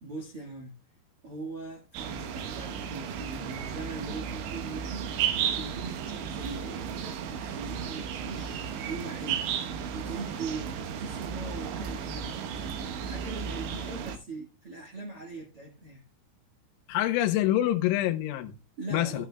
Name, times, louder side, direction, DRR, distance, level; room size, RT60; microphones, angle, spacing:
voice 1, 0.0-0.7 1.2-5.1 5.5-9.4 9.9-12.3 13.0-16.0 18.8-19.3, right 3 dB, 60° right, 1.4 m, -41 dB
sound 1, 1.9-14.2, right 8 dB, 75° right, 3.2 m, -34 dB
voice 2, 16.9-18.6 18.9-19.3, left 14 dB, 85° left, 3.3 m, -26 dB
14.0 x 9.1 x 2.2 m
omnidirectional pair, 5.4 m